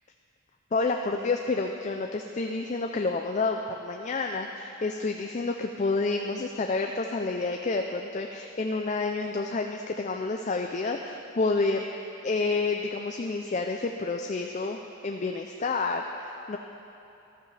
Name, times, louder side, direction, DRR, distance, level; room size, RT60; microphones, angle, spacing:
voice 1, 0.7-16.6, left 3 dB, 35° left, 3 dB, 0.4 m, -29 dB
14.5 x 12.5 x 3.3 m, 2.9 s
head